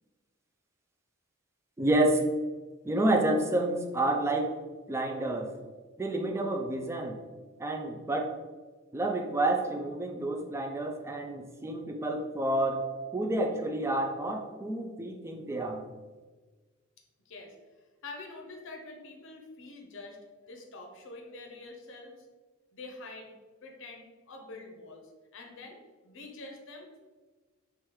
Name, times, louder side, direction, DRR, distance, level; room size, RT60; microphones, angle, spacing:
voice 1, 1.8-2.2 2.8-4.5 4.9-5.5 6.0-7.2 7.6-8.3 8.9-12.8 13.1-15.8, right 1 dB, 15° right, 3 dB, 0.3 m, -29 dB
voice 2, 18.0-22.1 22.7-23.3 23.6-27.0, left 2 dB, 65° left, 2 dB, 0.7 m, -46 dB
3.6 x 3.1 x 3.0 m, 1.4 s
head